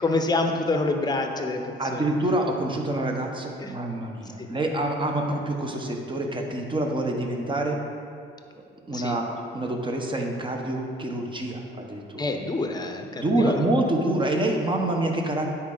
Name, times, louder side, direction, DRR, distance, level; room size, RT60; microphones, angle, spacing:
voice 1, 0.0-1.6 1.9-2.0 3.6-3.7 4.4-4.5 8.9-9.2 12.2-13.6, left 2 dB, 20° left, 4 dB, 0.8 m, -26 dB
voice 2, 1.8-7.8 8.9-12.3 13.1-15.5, right 1 dB, 25° right, 2 dB, 1.0 m, -27 dB
9.9 x 4.4 x 3.9 m, 2.3 s
cardioid pair, 90°, 20 cm